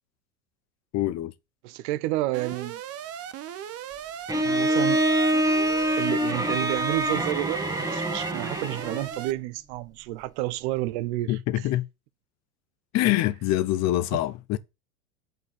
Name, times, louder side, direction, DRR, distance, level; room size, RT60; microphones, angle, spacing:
voice 1, 0.9-1.3 11.3-11.8 12.9-14.6, left 15 dB, 35° left, 0.9 m, -25 dB
voice 2, 1.6-2.8 4.4-5.0 6.0-11.4, right 16 dB, 50° right, 0.8 m, -30 dB
Alarm, 2.3-9.3, right 10 dB, 35° right, 1.1 m, -38 dB
Bowed string instrument, 4.3-9.2, right 1 dB, 10° right, 1.8 m, -25 dB
8.1 x 5.4 x 6.2 m
figure-of-eight pair, 85°, 44 cm